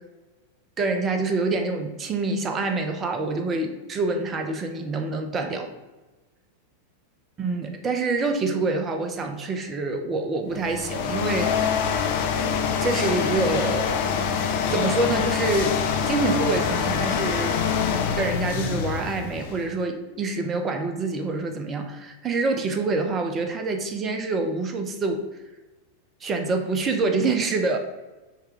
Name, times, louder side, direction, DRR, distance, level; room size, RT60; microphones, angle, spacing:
voice 1, 0.8-5.7 7.4-11.9 12.8-14.0 14.7-17.6 18.1-25.2 26.2-27.8, right 3 dB, 25° right, 5 dB, 0.6 m, -26 dB
sound 1, 10.5-19.7, left 6 dB, 50° left, 0.5 m, -25 dB
5.5 x 2.3 x 3.7 m, 1.1 s
figure-of-eight pair, 90°, 0 cm